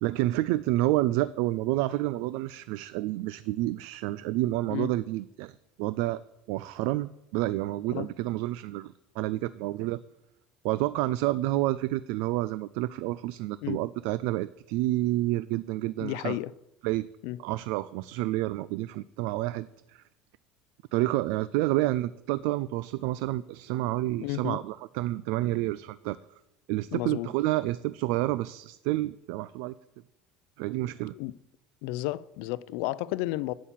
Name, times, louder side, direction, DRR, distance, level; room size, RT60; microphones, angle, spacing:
voice 1, 0.0-6.2 6.5-10.0 10.6-16.4 16.8-17.1 17.4-20.0 20.9-26.2 26.7-29.7 30.6-31.1, right 17 dB, 65° right, 0.4 m, -29 dB
voice 2, 16.0-16.5 17.2-17.4 24.2-24.6 26.9-27.3 31.1-31.4 31.8-33.5, left 17 dB, 65° left, 0.5 m, -32 dB
11.5 x 8.5 x 7.4 m
cardioid pair, 175°, 3 cm